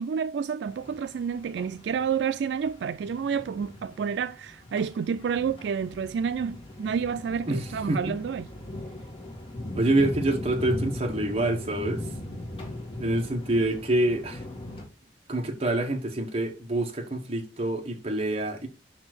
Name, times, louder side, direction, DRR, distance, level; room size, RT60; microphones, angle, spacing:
voice 1, 0.0-8.5, right 6 dB, 75° right, 0.3 m, -29 dB
sound 1, 0.6-14.9, left 1 dB, 30° left, 2.1 m, -39 dB
voice 2, 7.5-8.0 9.7-12.1 13.0-14.4 15.3-18.7, right 1 dB, 35° right, 1.4 m, -26 dB
5.6 x 4.3 x 6.1 m
head